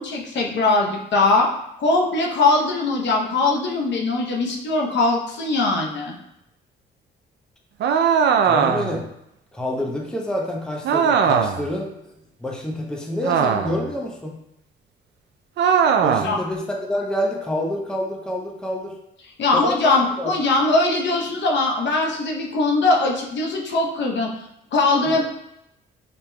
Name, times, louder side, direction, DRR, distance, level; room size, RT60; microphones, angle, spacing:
voice 1, 0.0-1.5 1.8-6.2 16.2-16.4 19.4-24.3 24.7-25.2, left 3 dB, 65° left, 0 dB, 0.8 m, -21 dB
sound 1, 7.8-9.0 10.8-11.7 13.2-13.9 15.6-16.4, right 7 dB, 60° right, 0.4 m, -19 dB
voice 2, 8.4-9.1 9.5-11.9 12.4-14.3 16.0-18.9 19.5-20.3 25.0-25.1, left 1 dB, 5° left, -1 dB, 0.7 m, -27 dB
5.1 x 2.8 x 2.2 m, 0.81 s
cardioid pair, 90°, 20 cm